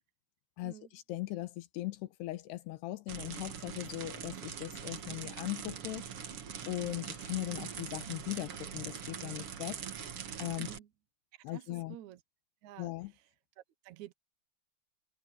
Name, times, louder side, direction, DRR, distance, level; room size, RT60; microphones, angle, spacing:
voice 1, 0.6-6.1 6.7-9.8 10.4-10.7 11.4-12.0 12.8-13.1, left 17 dB, 75° left, 3.0 m, -39 dB
sound 1, 3.1-10.8, right 8 dB, 70° right, 1.4 m, -42 dB
voice 2, 10.6-10.9 11.3-12.2 12.6-13.3 13.6-14.1, right 12 dB, 85° right, 1.6 m, -51 dB
omnidirectional pair, 4.9 m